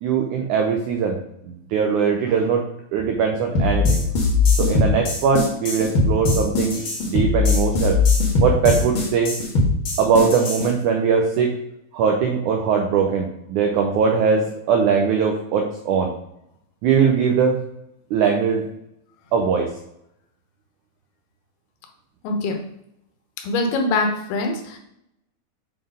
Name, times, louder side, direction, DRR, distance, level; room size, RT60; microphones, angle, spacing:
voice 1, 0.0-1.2 1.5-4.0 4.6-8.0 8.4-9.3 10.0-11.5 11.9-16.1 16.8-17.6 18.1-18.6 19.3-19.7, right 6 dB, 85° right, 2 dB, 1.7 m, -20 dB
sound 1, 3.5-10.6, left 3 dB, 55° left, 1.5 m, -20 dB
voice 2, 22.2-22.7 23.4-24.8, left 2 dB, 85° left, 4 dB, 3.0 m, -23 dB
7.4 x 4.0 x 5.0 m, 0.78 s
omnidirectional pair, 4.4 m